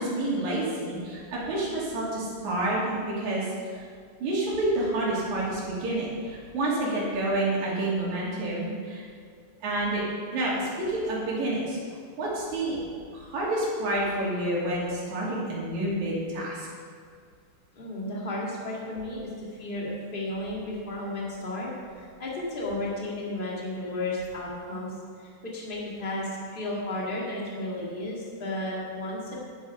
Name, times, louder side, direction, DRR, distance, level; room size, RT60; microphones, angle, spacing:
voice 1, 0.0-3.5 4.2-9.0 9.6-10.0 10.3-11.8 12.2-12.8 13.1-16.7, right 1 dB, 50° right, -6 dB, 3.9 m, -28 dB
voice 2, 17.7-21.7 22.0-24.9 25.2-29.3, left 1 dB, 25° left, -4 dB, 1.1 m, -33 dB
11.0 x 10.5 x 4.8 m, 2.1 s
omnidirectional pair, 4.6 m